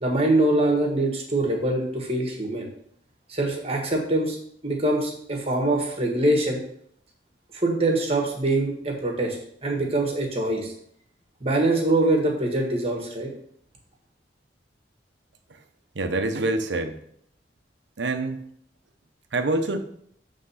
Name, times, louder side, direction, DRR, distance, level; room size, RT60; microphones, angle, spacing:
voice 1, 0.0-2.7 3.3-4.4 4.6-6.6 7.5-10.7 11.4-13.3, right 2 dB, 35° right, 1 dB, 1.5 m, -24 dB
voice 2, 15.9-17.0 18.0-18.5 19.3-19.8, right 2 dB, 85° right, 7 dB, 0.8 m, -26 dB
7.6 x 3.6 x 5.6 m, 0.67 s
head